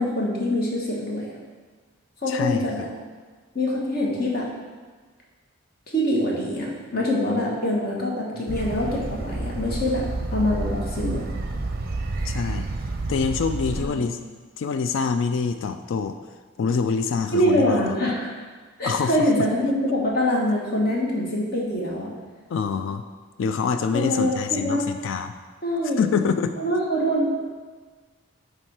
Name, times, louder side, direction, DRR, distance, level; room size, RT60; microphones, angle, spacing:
voice 1, 0.0-1.3 2.2-2.9 3.5-4.5 5.9-10.0 10.3-11.2 13.8-14.0 17.3-18.3 18.8-22.1 23.9-24.9 25.6-26.0 26.6-27.4, left 1 dB, 45° left, -3 dB, 1.3 m, -24 dB
voice 2, 2.3-2.6 12.2-12.7 13.1-14.2 14.6-16.2 16.6-18.0 18.8-19.3 22.5-23.0 23.4-25.3 25.8-26.5, left 5 dB, 65° left, 8 dB, 0.3 m, -25 dB
sound 1, 8.5-13.9, right 2 dB, 45° right, 0.5 m, -29 dB
8.5 x 3.3 x 4.8 m, 1.4 s
head